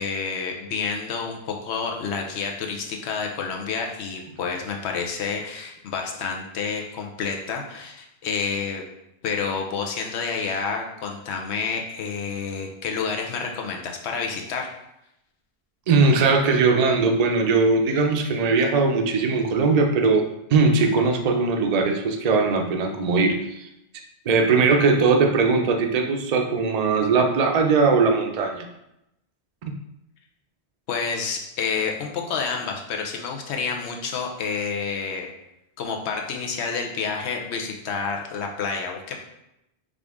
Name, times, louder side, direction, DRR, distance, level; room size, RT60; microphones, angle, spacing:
voice 1, 0.0-8.8 9.2-14.8 30.9-35.3 35.8-39.1, left 5 dB, 85° left, 2 dB, 1.0 m, -29 dB
voice 2, 15.9-23.7 24.3-28.7, right 4 dB, 50° right, 4 dB, 0.5 m, -20 dB
5.0 x 2.5 x 3.5 m, 0.85 s
omnidirectional pair, 1.1 m